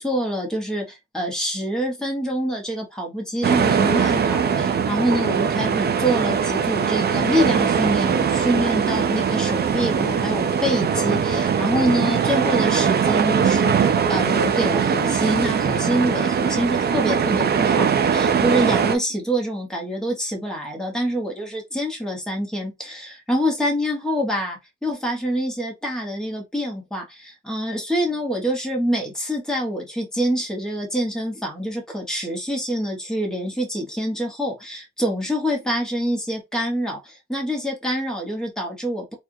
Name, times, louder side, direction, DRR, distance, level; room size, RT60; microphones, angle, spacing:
voice 1, 0.0-39.1, equal, ahead, 1.0 m, -26 dB
sound 1, 3.4-19.0, right 7 dB, 35° right, 0.4 m, -21 dB
4.3 x 2.4 x 2.6 m
wide cardioid pair, 160°, 29 cm